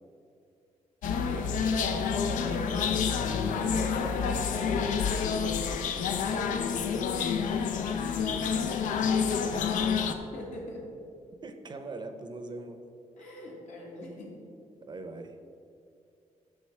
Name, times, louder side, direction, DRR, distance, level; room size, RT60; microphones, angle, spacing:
sound 1, 1.0-10.1, left 6 dB, 90° left, 0.5 m, -28 dB
voice 1, 1.2-3.1 3.4-5.6 6.1-7.3 9.2-10.1 10.3-10.9 13.2-14.4, left 1 dB, 70° left, -3 dB, 1.9 m, -43 dB
voice 2, 8.4-9.3 11.4-12.8 14.9-15.4, right 2 dB, 35° right, 7 dB, 0.6 m, -42 dB
10.0 x 5.9 x 3.2 m, 2.5 s
cardioid pair, 110°, 13 cm